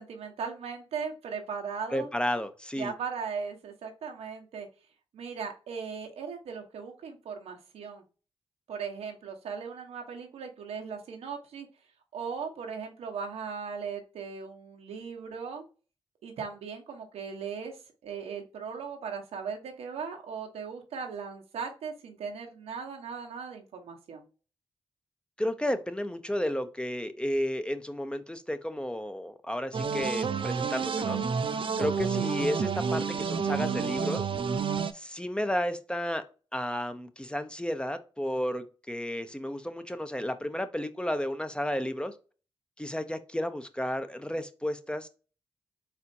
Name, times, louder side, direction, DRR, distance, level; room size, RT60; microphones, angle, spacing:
voice 1, 0.0-2.1 2.8-4.7 5.1-8.0 8.7-11.7 12.1-15.6 16.2-24.2, right 6 dB, 90° right, 1.1 m, -38 dB
voice 2, 1.9-2.9 25.4-31.2 31.8-34.3 34.9-36.2 36.5-42.1 42.8-45.1, equal, 10° left, 0.7 m, -32 dB
sound 1, 29.7-34.9, right 6 dB, 55° right, 0.6 m, -29 dB
4.3 x 4.1 x 2.7 m
cardioid pair, 50°, 10 cm